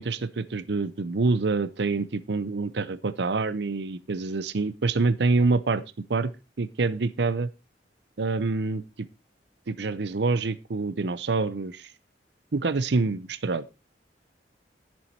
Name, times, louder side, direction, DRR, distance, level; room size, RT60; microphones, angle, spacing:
voice 1, 0.0-5.8 6.1-6.3 6.6-7.5 8.2-8.8 9.7-11.9 12.5-13.6, right 3 dB, 70° right, 16 dB, 0.6 m, -26 dB
10.5 x 7.2 x 4.5 m, 0.29 s
head